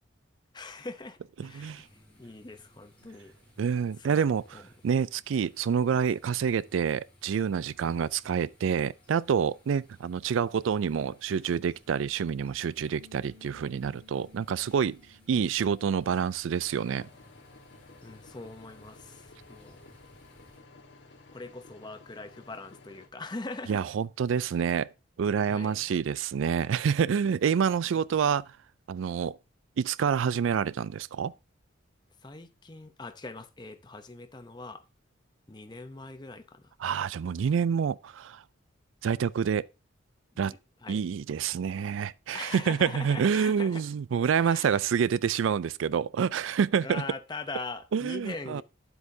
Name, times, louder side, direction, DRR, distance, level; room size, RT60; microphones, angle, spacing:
voice 1, 0.5-1.9 2.2-3.3 4.1-4.2 4.5-4.6 7.8-7.9 18.0-19.8 21.3-23.8 25.5-25.7 32.2-34.8 35.5-36.6 40.8-41.0 42.3-43.8 44.4-44.8 46.8-48.6, left 3 dB, 20° left, 0.7 m, -41 dB
sound 1, 1.4-20.6, equal, 5° left, 3.9 m, -61 dB
voice 2, 1.4-1.9 3.6-15.0 15.3-17.1 23.7-24.9 25.2-28.6 28.9-29.4 29.8-31.3 36.8-38.4 39.0-39.7 40.4-40.5 40.9-47.0 47.9-48.6, right 7 dB, 80° right, 0.3 m, -27 dB
Bass guitar, 12.8-17.1 17.4-19.0, left 6 dB, 40° right, 2.2 m, -60 dB
sound 2, 16.6-23.1, left 3 dB, 65° left, 1.5 m, -54 dB
9.7 x 7.9 x 2.7 m
head